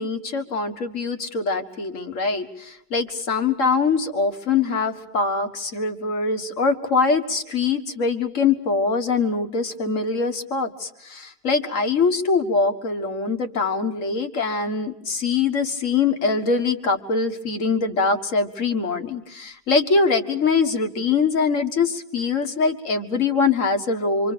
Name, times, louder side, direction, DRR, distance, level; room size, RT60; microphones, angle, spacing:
voice 1, 0.0-24.3, left 4 dB, 55° left, 7 dB, 2.0 m, -23 dB
27.0 x 25.5 x 6.8 m, 0.74 s
omnidirectional pair, 1.7 m